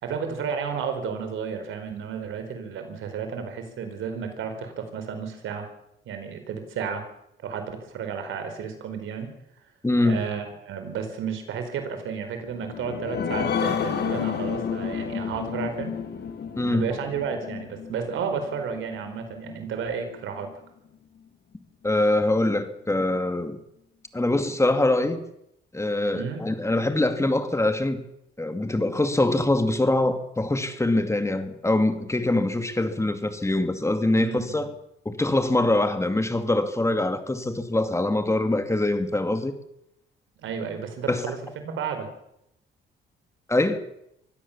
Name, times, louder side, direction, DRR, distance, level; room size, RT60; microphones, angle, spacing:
voice 1, 0.0-5.7 6.1-7.0 7.4-9.3 10.0-16.0 16.6-20.5 26.1-26.4 34.1-34.7 40.4-42.1, right 6 dB, 80° right, 7 dB, 4.6 m, -32 dB
voice 2, 9.8-10.2 16.6-17.0 21.8-23.6 24.1-25.2 25.7-28.0 28.4-34.7 35.1-39.5 41.1-41.2 43.5-43.8, left 2 dB, 15° left, 8 dB, 2.3 m, -23 dB
sound 1, 12.5-19.6 20.0-20.1 20.5-20.6, left 7 dB, 55° left, 2.5 m, -31 dB
24.0 x 16.0 x 7.3 m, 0.79 s
cardioid pair, 90°, 20 cm